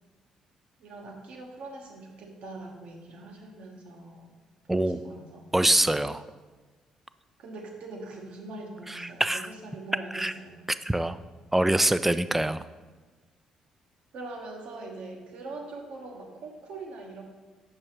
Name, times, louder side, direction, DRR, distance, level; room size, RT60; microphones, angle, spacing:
voice 1, 0.8-4.3 4.7-5.5 7.4-10.5 14.1-17.2, right 2 dB, 60° right, 1 dB, 1.1 m, -42 dB
voice 2, 5.5-6.2 8.9-9.5 10.1-10.3 10.9-11.2 11.5-12.6, right 1 dB, 10° right, 13 dB, 0.3 m, -24 dB
7.8 x 6.3 x 3.0 m, 1.3 s
hypercardioid pair, 45°, 2 cm